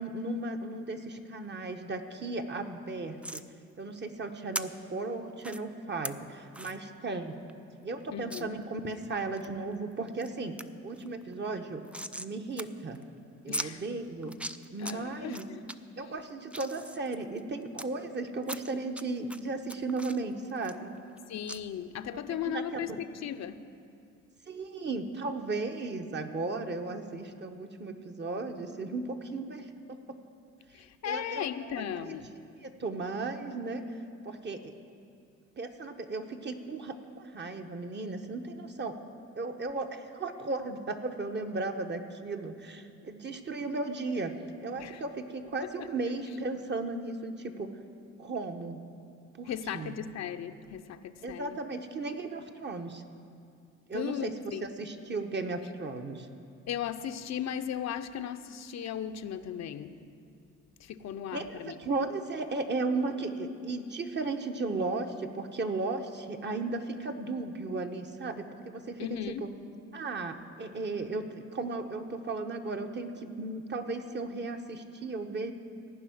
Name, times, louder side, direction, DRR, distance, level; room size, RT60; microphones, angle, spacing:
voice 1, 0.0-3.4 3.8-7.3 7.8-10.5 10.8-11.8 12.1-13.0 13.4-14.3 14.7-15.4 16.0-20.9 22.1-22.6 24.5-30.2 31.0-31.5 32.0-32.1 32.5-33.8 34.2-34.7 35.6-38.9 39.4-47.7 48.2-48.8 49.4-50.0 51.2-53.0 53.9-56.3 61.3-69.5 69.9-75.5, right 3 dB, 35° right, 5 dB, 1.0 m, -35 dB
sound 1, 3.2-3.5 4.5-4.6 5.4-5.6 6.0-6.1 6.5-6.8 7.2-7.3 7.5-7.6 8.3-8.4 8.9-9.5 9.9-10.3 10.6-10.7 11.0-12.3 12.6-12.7 12.9-13.0 13.5-13.7 14.2-14.9 15.3-15.7 16.2-17.9 18.4-19.0 19.3-21.2 21.5-21.6, right 1 dB, 5° right, 0.3 m, -39 dB
voice 2, 8.1-8.5 13.5-13.8 14.8-15.6 21.3-23.7 30.7-32.3 44.8-45.0 45.8-45.9 49.5-51.6 53.9-54.7 56.7-60.0 60.8-61.8 69.0-69.5, left 9 dB, 60° left, 9 dB, 0.7 m, -37 dB
16.0 x 5.5 x 9.3 m, 2.4 s
cardioid pair, 90°, 30 cm